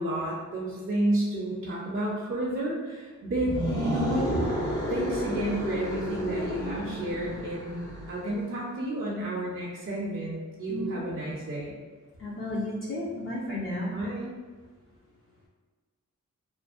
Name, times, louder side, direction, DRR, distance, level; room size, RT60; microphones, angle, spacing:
voice 1, 0.0-4.3 4.9-11.7 13.9-14.3, right 1 dB, 40° right, -4 dB, 0.5 m, -31 dB
sound 1, 3.3-8.4, equal, 80° left, 1.0 m, -31 dB
voice 2, 10.7-11.0 12.2-13.9, left 1 dB, 40° left, -7 dB, 0.5 m, -33 dB
2.5 x 2.0 x 2.4 m, 1.4 s
cardioid pair, 65°, 31 cm